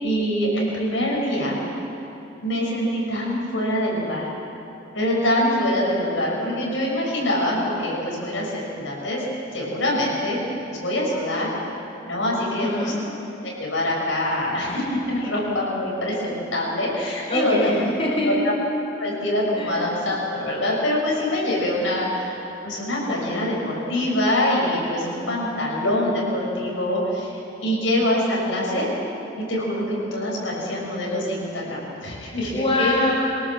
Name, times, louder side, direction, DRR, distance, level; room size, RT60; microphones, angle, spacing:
voice 1, 0.0-1.6 2.4-4.2 4.9-9.2 9.5-11.5 12.1-12.7 13.4-17.8 19.0-22.3 22.6-27.3 27.6-28.9 29.4-33.0, left 1 dB, 80° left, -3 dB, 6.5 m, -24 dB
voice 2, 12.4-13.0 17.3-18.3 19.6-19.7 32.5-33.1, left 1 dB, 30° left, -4 dB, 4.1 m, -24 dB
24.0 x 18.0 x 7.6 m, 3.0 s
head